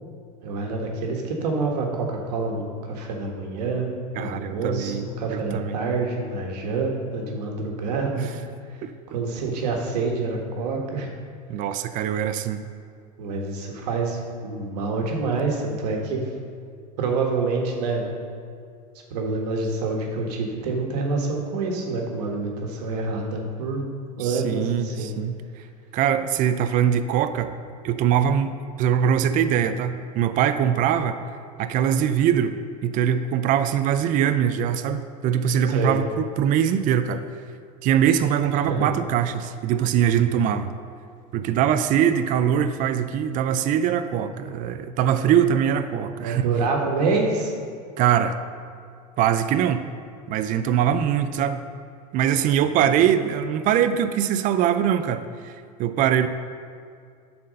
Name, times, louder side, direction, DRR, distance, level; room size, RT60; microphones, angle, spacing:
voice 1, 0.4-8.3 9.1-11.2 13.2-16.2 17.0-18.0 19.1-23.8 24.2-25.1 35.7-36.0 38.6-38.9 46.2-47.5 52.7-52.8, right 3 dB, 80° right, 1 dB, 1.6 m, -27 dB
voice 2, 4.2-5.8 8.2-8.3 8.8-8.9 11.5-12.6 24.2-25.4 25.9-27.5 27.8-28.5 28.8-31.2 31.6-32.5 32.8-37.2 37.8-40.7 41.3-46.4 48.0-48.4 49.2-49.9 50.3-51.6 52.1-56.3, right 9 dB, 40° right, 10 dB, 0.5 m, -22 dB
9.5 x 4.3 x 6.4 m, 2.2 s
supercardioid pair, 115°, 20 cm